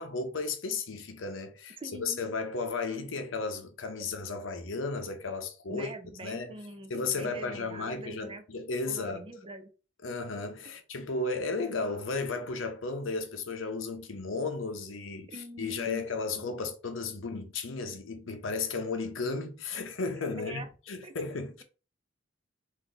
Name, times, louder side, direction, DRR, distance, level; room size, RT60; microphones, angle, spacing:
voice 1, 0.0-5.9 6.2-6.5 6.9-9.3 10.0-21.6, left 3 dB, 75° left, 0.8 m, -34 dB
voice 2, 1.8-2.2 5.7-8.4 8.9-9.7 15.3-16.0 16.3-16.5 20.4-20.7 21.0-21.3, right 1 dB, 30° right, 0.6 m, -44 dB
4.1 x 2.7 x 3.8 m
head